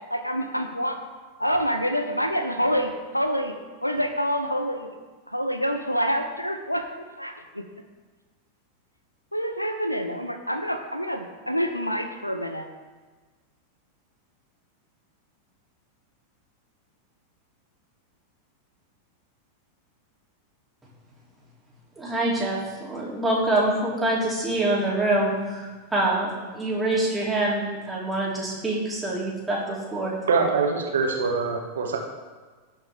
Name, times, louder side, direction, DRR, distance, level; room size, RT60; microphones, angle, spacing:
voice 1, 0.1-1.0 1.4-3.5 3.8-4.9 5.3-6.8 7.2-7.7 9.3-12.7, equal, 90° left, 7 dB, 0.8 m, -27 dB
voice 2, 22.0-30.1, right 1 dB, 10° right, -6 dB, 3.1 m, -25 dB
voice 3, 30.3-32.0, right 4 dB, 65° right, 0 dB, 1.8 m, -24 dB
17.0 x 5.7 x 3.6 m, 1.4 s
figure-of-eight pair, 90°, 0 cm